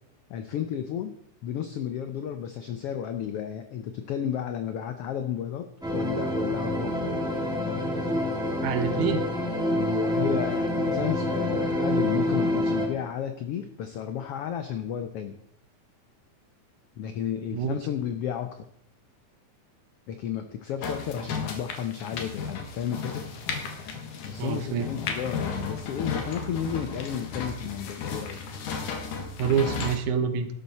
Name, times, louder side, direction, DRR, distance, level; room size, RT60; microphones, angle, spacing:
voice 1, 0.3-1.2 1.4-5.7 5.9-7.1 9.7-15.4 17.0-18.6 20.1-23.3 24.2-28.4, left 9 dB, 70° left, 8 dB, 1.4 m, -32 dB
sound 1, 5.8-12.9, left 1 dB, ahead, 2.3 m, -27 dB
voice 2, 8.6-9.3 17.5-17.8 24.4-24.9 29.4-30.5, right 7 dB, 75° right, 9 dB, 2.6 m, -26 dB
sound 2, 20.8-30.0, left 5 dB, 90° left, 3.2 m, -34 dB
12.5 x 12.0 x 4.2 m, 0.71 s
omnidirectional pair, 3.5 m